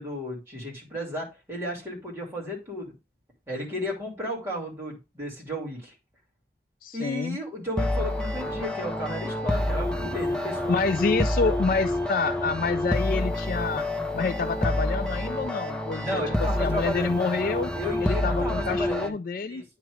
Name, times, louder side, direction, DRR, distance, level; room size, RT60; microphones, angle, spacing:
voice 1, 0.0-2.9 3.5-5.9 6.9-10.8 16.0-17.1 17.7-19.1 19.4-19.6, left 1 dB, 15° right, 2.6 m, -33 dB
voice 2, 6.8-7.4 10.7-13.8 14.1-17.7 18.0-19.6, left 4 dB, 50° left, 0.3 m, -28 dB
sound 1, 7.8-19.1, left 1 dB, 5° left, 0.6 m, -28 dB
9.1 x 3.1 x 4.9 m
head